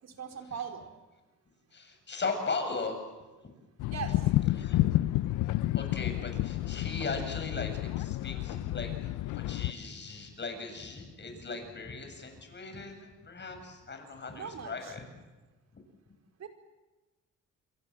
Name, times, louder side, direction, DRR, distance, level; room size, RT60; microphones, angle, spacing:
voice 1, 0.0-0.9 3.9-4.2 14.3-14.9 16.4-16.5, right 7 dB, 60° right, 5 dB, 4.7 m, -40 dB
voice 2, 1.7-3.0 4.6-4.8 5.7-15.0, left 4 dB, 35° left, 6 dB, 7.9 m, -38 dB
sound 1, 3.8-9.7, left 15 dB, 90° left, 0.7 m, -30 dB
28.0 x 23.0 x 7.6 m, 1.2 s
cardioid pair, 90°, 30 cm